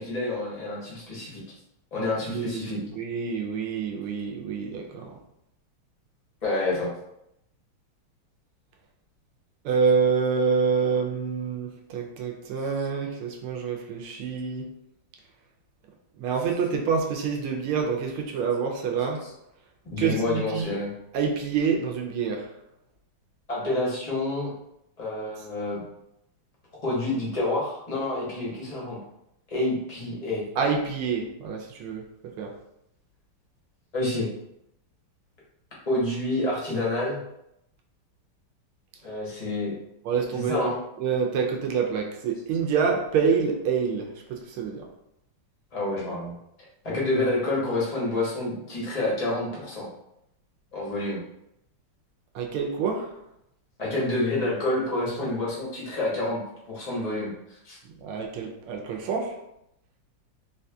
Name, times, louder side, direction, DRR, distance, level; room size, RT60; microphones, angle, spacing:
voice 1, 0.0-1.4 1.9-2.8 6.4-6.9 19.2-19.3 19.9-20.9 23.5-24.5 25.0-25.8 26.8-29.0 29.5-30.4 33.9-34.3 35.9-37.2 39.0-39.7 40.3-40.8 45.7-46.3 46.8-49.9 50.7-51.2 53.8-56.4 56.7-57.8, left 2 dB, 55° left, -5 dB, 0.4 m, -28 dB
voice 2, 2.0-5.1 9.6-14.7 16.2-19.2 20.0-20.7 21.1-22.5 30.6-32.0 32.4-32.5 40.0-40.7 41.0-44.8 52.3-53.1 58.0-59.4, right 5 dB, 85° right, 1 dB, 1.5 m, -27 dB
4.1 x 2.7 x 2.3 m, 0.80 s
omnidirectional pair, 2.3 m